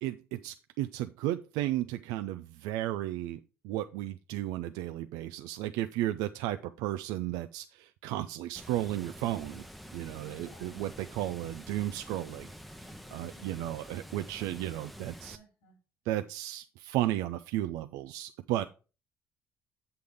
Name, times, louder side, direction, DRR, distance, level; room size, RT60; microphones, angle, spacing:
voice 1, 0.0-3.4 3.6-9.6 9.9-12.5 13.1-15.4 16.1-18.6, right 14 dB, 75° right, 10 dB, 0.4 m, -34 dB
Water, 8.6-15.4, equal, ahead, 0.8 m, -47 dB
voice 2, 10.3-10.8 12.9-13.9 15.3-15.8, right 1 dB, 85° left, 1 dB, 3.0 m, -59 dB
7.8 x 6.8 x 3.5 m, 0.33 s
hypercardioid pair, 55°, 6 cm